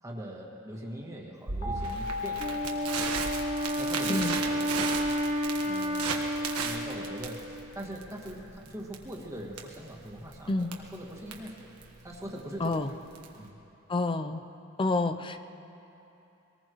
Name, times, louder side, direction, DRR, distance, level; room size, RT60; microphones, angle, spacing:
voice 1, 0.0-2.7 3.8-5.1 5.6-6.3 6.6-11.7 12.0-13.0 13.4-13.6, right 1 dB, 15° right, -2 dB, 2.0 m, -42 dB
Crackle, 1.5-13.5, right 4 dB, 85° right, 1.5 m, -36 dB
sound 1, 1.6-4.6, left 4 dB, 80° left, 3.2 m, -38 dB
Wind instrument woodwind instrument, 2.4-7.8, equal, 30° right, 0.8 m, -31 dB
voice 2, 4.1-4.4 10.5-10.7 12.6-12.9 13.9-14.4 14.8-15.4, left 2 dB, 25° left, 9 dB, 0.5 m, -28 dB
24.0 x 19.0 x 3.1 m, 2.9 s
head